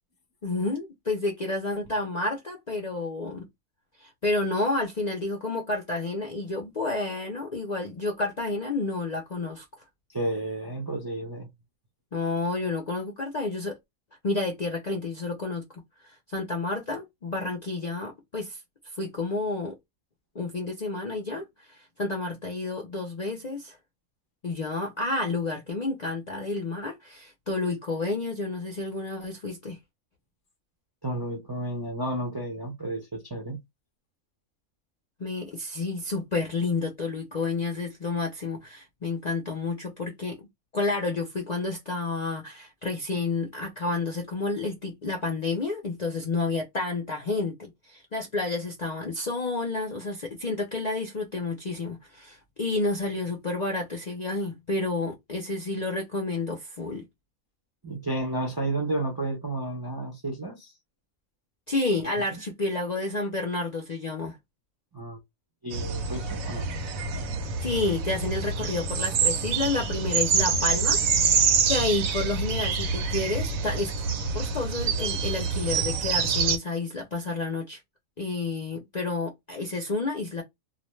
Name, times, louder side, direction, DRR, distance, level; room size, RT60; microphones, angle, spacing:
voice 1, 0.4-3.4 4.0-9.6 12.1-13.8 14.2-15.6 16.0-18.6 19.0-19.8 20.3-23.8 24.4-29.8 35.2-40.5 40.7-57.0 61.7-64.4 67.6-74.0 74.3-77.8 78.2-80.4, left 3 dB, 50° left, 0.5 m, -30 dB
voice 2, 10.1-11.5 31.0-33.6 57.8-60.7 62.3-62.4 64.9-65.2 65.6-66.7, right 1 dB, 30° right, 0.4 m, -32 dB
sound 1, 65.7-76.6, right 5 dB, 85° right, 1.0 m, -26 dB
2.5 x 2.1 x 3.0 m
omnidirectional pair, 1.4 m